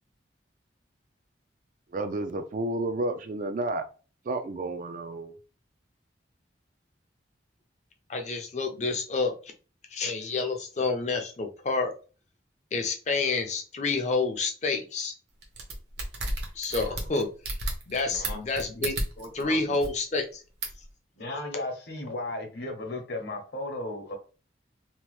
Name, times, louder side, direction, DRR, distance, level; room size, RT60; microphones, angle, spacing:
voice 1, 1.9-3.8 4.3-5.3, right 2 dB, 45° right, 0.3 m, -31 dB
voice 2, 8.1-9.3 9.9-11.9 12.7-15.1 16.6-17.3 17.9-19.0 19.3-20.4, left 3 dB, 35° left, 0.5 m, -28 dB
sound 1, 15.4-19.4 19.7-19.9 20.6-20.8, right 2 dB, 60° right, 0.8 m, -32 dB
voice 3, 19.2-19.8 21.2-24.1, left 2 dB, 60° left, 0.8 m, -35 dB
2.9 x 2.1 x 3.1 m
head